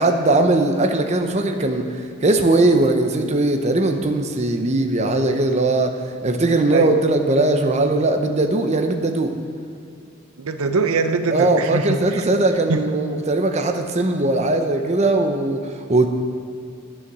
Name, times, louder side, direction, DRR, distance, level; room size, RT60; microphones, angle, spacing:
voice 1, 0.0-6.0 6.2-9.3 11.3-16.1, right 2 dB, 30° right, 5 dB, 0.8 m, -19 dB
voice 2, 6.7-7.1 10.4-12.0 12.7-12.8, right 4 dB, 85° right, 8 dB, 0.7 m, -22 dB
9.9 x 9.8 x 6.1 m, 2.4 s
head